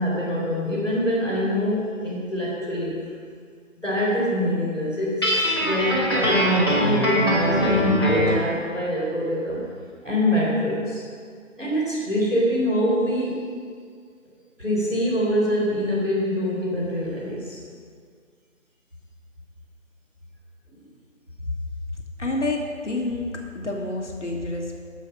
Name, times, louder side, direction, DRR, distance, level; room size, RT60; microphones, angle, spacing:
voice 1, 0.0-2.9 3.8-9.6 10.0-11.0 11.6-13.4 14.6-17.6, equal, ahead, -22 dB, 1.7 m, -24 dB
Guitar, 5.2-8.5, equal, 20° left, 1.1 m, -22 dB
voice 2, 22.2-23.3 23.5-24.8, left 2 dB, 60° left, 1 dB, 1.5 m, -28 dB
10.5 x 6.6 x 5.8 m, 2.1 s
figure-of-eight pair, 160°, 40 cm